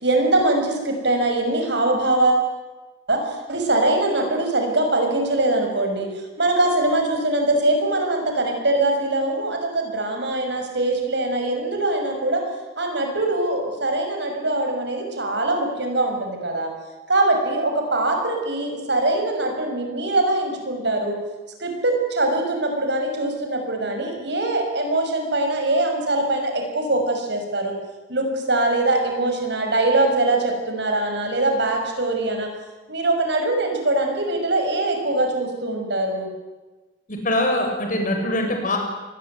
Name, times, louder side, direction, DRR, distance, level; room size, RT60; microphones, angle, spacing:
voice 1, 0.0-2.5 3.1-6.1 6.4-12.4 12.8-16.7 17.1-21.2 21.6-27.8 28.1-32.5 32.9-36.3, right 2 dB, 65° right, 4 dB, 6.4 m, -22 dB
voice 2, 37.1-38.8, left 1 dB, 45° left, 3 dB, 6.5 m, -23 dB
26.0 x 20.5 x 9.4 m, 1.2 s
head